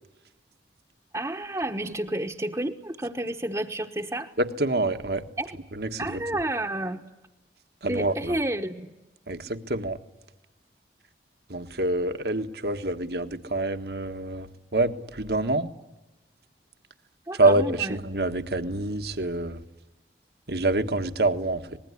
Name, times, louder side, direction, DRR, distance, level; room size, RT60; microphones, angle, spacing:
voice 1, 1.1-4.3 5.4-5.6 6.0-7.0 7.9-8.9 17.3-18.0, right 1 dB, 20° right, 0 dB, 1.1 m, -30 dB
voice 2, 4.4-5.2 5.7-6.2 7.8-8.3 9.3-10.0 11.5-14.5 14.7-15.7 17.4-19.6 20.5-21.8, right 2 dB, 65° right, 8 dB, 1.6 m, -26 dB
25.5 x 20.5 x 9.9 m, 1.0 s
head